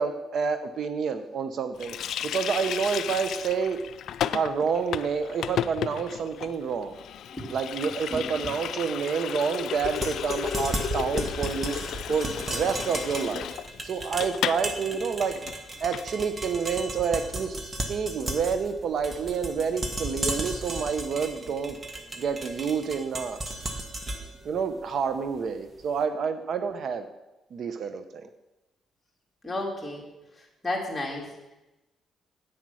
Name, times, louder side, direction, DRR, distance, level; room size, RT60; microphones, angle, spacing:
voice 1, 0.0-2.0 2.3-3.8 4.3-6.9 7.5-11.8 12.1-13.5 13.8-15.3 15.8-21.8 22.2-23.4 24.4-27.1 27.5-28.3, right 6 dB, 60° right, 9 dB, 0.8 m, -28 dB
Water tap faucet, 1.8-14.7 14.9-15.1 15.3-16.1, left 10 dB, 70° left, 0.4 m, -34 dB
sound 1, 9.8-25.8, right 1 dB, 25° right, 1.6 m, -35 dB
voice 2, 29.4-30.1 30.3-31.5, left 1 dB, 10° left, -2 dB, 3.7 m, -33 dB
9.5 x 8.8 x 6.3 m, 1.0 s
cardioid pair, 90°, 0 cm